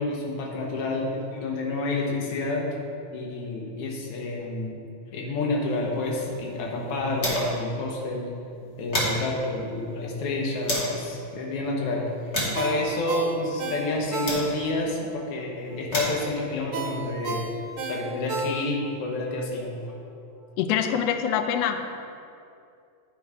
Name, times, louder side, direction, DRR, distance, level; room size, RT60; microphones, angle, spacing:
voice 1, 0.0-2.7 3.1-4.8 5.1-8.3 8.8-12.1 12.5-20.0, left 2 dB, 60° left, -1 dB, 1.8 m, -29 dB
sound 1, 5.9-7.7 8.0-8.1 8.5-11.0 11.6-14.9 15.6-17.8, equal, 40° left, 1.0 m, -33 dB
Ringtone, 12.5-14.8 15.2-15.3 16.7-19.0 19.4-19.5, right 4 dB, 75° right, 1.3 m, -33 dB
voice 2, 20.6-22.0, left 8 dB, 85° left, 7 dB, 1.4 m, -25 dB
10.5 x 3.9 x 4.8 m, 2.5 s
omnidirectional pair, 3.3 m